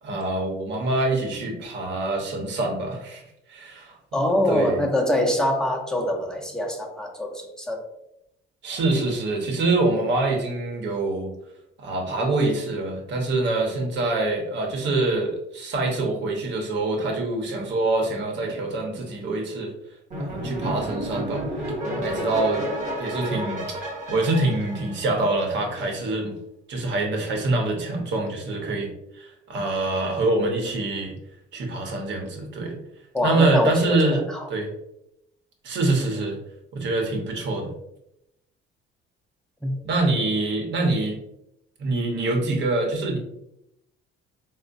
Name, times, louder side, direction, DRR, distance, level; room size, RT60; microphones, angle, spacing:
voice 1, 0.0-3.2 3.5-4.0 4.3-4.8 8.6-11.3 11.8-19.7 20.2-22.7 23.0-26.3 26.7-31.2 31.5-32.8 33.2-34.2 34.5-34.7 35.6-36.4 36.7-37.7 39.8-41.2 41.8-43.2, right 2 dB, 60° right, 2 dB, 0.9 m, -25 dB
voice 2, 4.1-7.9 33.1-33.7 34.0-34.4 39.6-39.7, left 1 dB, 5° left, 0 dB, 0.6 m, -24 dB
sound 1, 20.1-25.6, equal, 35° right, 0.9 m, -31 dB
4.2 x 2.1 x 2.5 m, 0.81 s
cardioid pair, 120°, 21 cm